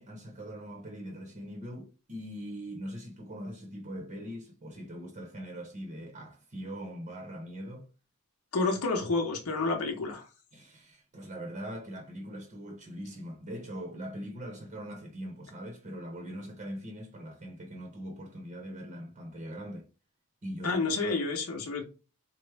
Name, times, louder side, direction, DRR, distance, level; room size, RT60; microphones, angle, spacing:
voice 1, 0.0-7.9 10.5-19.9 20.4-21.0, equal, 35° right, 0.7 m, -41 dB
voice 2, 8.5-10.2 20.6-21.8, left 3 dB, 75° left, 0.7 m, -29 dB
4.4 x 2.0 x 3.2 m
head